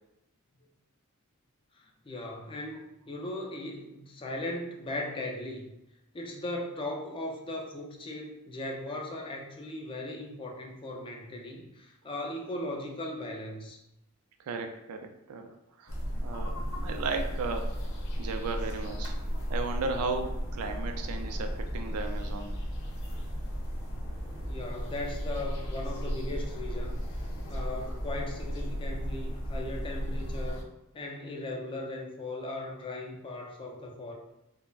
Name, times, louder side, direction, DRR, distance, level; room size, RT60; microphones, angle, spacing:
voice 1, 1.8-5.7 6.1-13.8 24.4-30.7 30.9-34.1, left 1 dB, 25° left, 0 dB, 0.4 m, -38 dB
voice 2, 14.4-15.5 15.8-15.9 16.2-17.7 18.2-19.1 19.5-22.6, right 4 dB, 85° right, 5 dB, 0.3 m, -35 dB
sound 1, 15.9-30.6, equal, 65° left, 0.6 m, -34 dB
2.3 x 2.0 x 3.2 m, 0.91 s
head